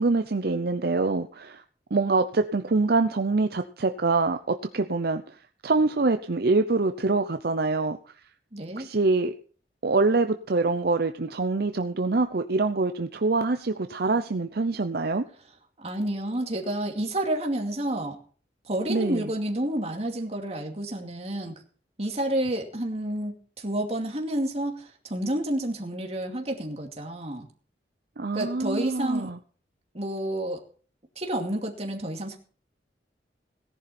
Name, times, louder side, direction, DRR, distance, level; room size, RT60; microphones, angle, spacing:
voice 1, 0.0-1.6 1.9-5.3 5.6-8.0 8.8-9.4 9.8-15.3 18.9-19.3 28.2-29.4, right 3 dB, 60° right, 8 dB, 0.7 m, -25 dB
voice 2, 8.5-8.9 15.8-18.2 18.7-21.5 22.0-27.5 28.3-29.3 29.9-30.6 31.2-32.4, right 1 dB, 35° right, 2 dB, 2.5 m, -30 dB
17.5 x 11.0 x 4.3 m, 0.43 s
head